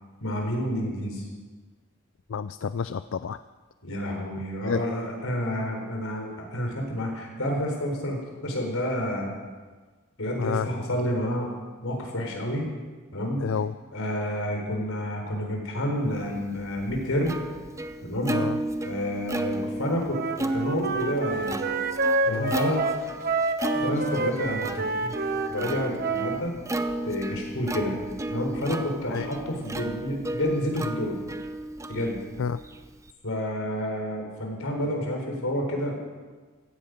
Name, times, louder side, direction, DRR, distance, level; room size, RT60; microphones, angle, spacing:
voice 1, 0.2-1.3 3.8-9.3 10.2-11.5 11.8-12.7 13.1-13.4 13.9-17.4 18.0-18.4 18.8-21.6 22.3-22.8 23.8-25.1 25.5-26.5 27.1-27.9 28.3-31.2 31.9-32.2 33.2-36.0, equal, 85° left, 1 dB, 4.2 m, -29 dB
voice 2, 2.3-3.4 4.7-4.8 10.4-10.7 13.4-13.7 18.3-18.6 22.3-22.6 29.1-29.3 32.4-32.6, left 6 dB, 65° left, 13 dB, 0.4 m, -29 dB
Plucked string instrument, 16.4-33.1, right 2 dB, 15° right, 0.6 m, -33 dB
Wind instrument woodwind instrument, 20.1-26.4, right 3 dB, 45° right, 0.9 m, -28 dB
16.5 x 14.5 x 5.2 m, 1.4 s
head